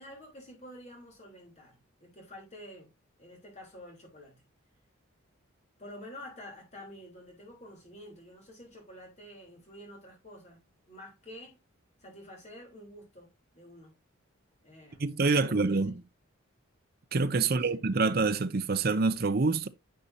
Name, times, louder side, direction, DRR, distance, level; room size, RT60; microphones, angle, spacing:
voice 1, 0.0-2.9 3.2-4.4 5.8-10.6 10.9-11.6 12.0-13.9 14.6-15.0 15.4-16.0 17.4-17.8, left 1 dB, 35° left, 3.6 m, -49 dB
voice 2, 15.0-15.9 17.1-19.7, right 3 dB, 45° right, 0.6 m, -26 dB
10.5 x 5.4 x 2.8 m
head